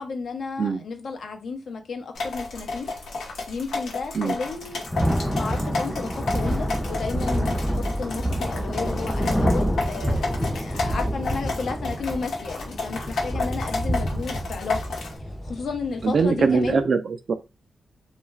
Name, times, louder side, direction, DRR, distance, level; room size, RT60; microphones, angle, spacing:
voice 1, 0.0-2.9 3.5-4.8 5.3-14.9 15.4-16.9, left 4 dB, 65° left, 0.7 m, -33 dB
sound 1, 2.2-15.2, left 3 dB, 85° left, 0.9 m, -32 dB
Thunder / Rain, 4.4-16.8, equal, ahead, 0.5 m, -27 dB
voice 2, 16.0-17.3, right 5 dB, 55° right, 0.4 m, -22 dB
2.4 x 2.3 x 3.1 m
wide cardioid pair, 120°, 0 cm